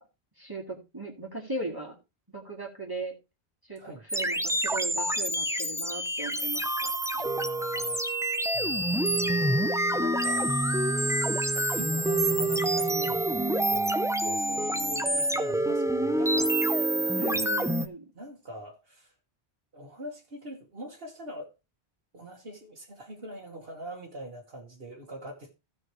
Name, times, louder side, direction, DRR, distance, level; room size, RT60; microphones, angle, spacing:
voice 1, 0.4-2.0 2.3-3.1 3.6-6.9 17.2-18.1, right 2 dB, 20° right, 2.3 m, -38 dB
sound 1, 4.1-17.9, right 1 dB, 5° right, 0.5 m, -27 dB
voice 2, 7.1-9.5 9.8-10.6 11.3-17.4 18.1-19.1 19.7-21.5 22.1-25.5, equal, 65° right, 1.9 m, -43 dB
16.0 x 6.2 x 3.1 m
omnidirectional pair, 1.1 m